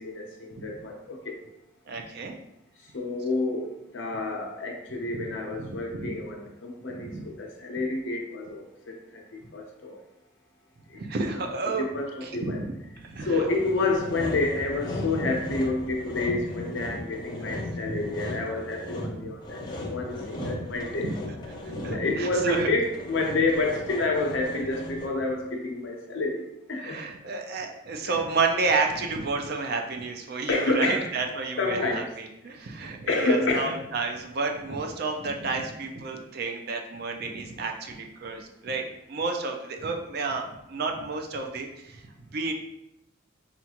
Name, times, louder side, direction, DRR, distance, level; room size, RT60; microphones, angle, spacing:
voice 1, 0.0-1.4 2.9-10.0 10.9-11.0 11.8-12.6 13.2-19.6 19.9-21.1 21.9-27.0 28.0-28.1 30.5-31.1 31.6-32.1 33.1-33.7, left 2 dB, 60° left, 0 dB, 0.6 m, -29 dB
voice 2, 1.9-2.3 5.1-5.2 5.6-6.2 6.9-7.3 10.9-11.9 12.2-13.5 15.2-15.3 16.8-17.0 17.3-17.4 17.9-18.0 19.0-19.3 20.3-20.6 21.0-21.1 21.6-22.7 26.8-38.8 39.1-42.0 42.3-42.5, right 4 dB, 50° right, 3 dB, 0.4 m, -31 dB
Sawing, 13.2-25.3, left 1 dB, 20° left, 0.6 m, -37 dB
5.6 x 2.4 x 2.8 m, 0.83 s
head